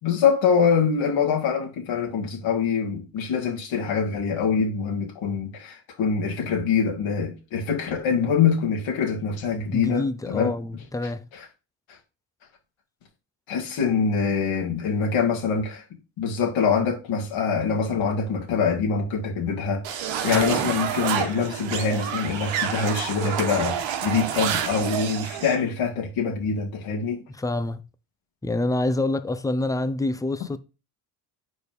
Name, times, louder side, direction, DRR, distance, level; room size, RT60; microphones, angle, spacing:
voice 1, 0.0-10.5 11.3-11.5 13.5-15.8 16.2-27.2, left 6 dB, 65° left, 2.5 m, -24 dB
voice 2, 9.7-11.2 20.3-20.4 27.3-27.8 28.4-30.6, left 2 dB, 5° left, 0.7 m, -26 dB
sound 1, 19.8-25.6, right 8 dB, 65° right, 1.4 m, -28 dB
6.6 x 4.3 x 5.3 m
supercardioid pair, 85°, 49 cm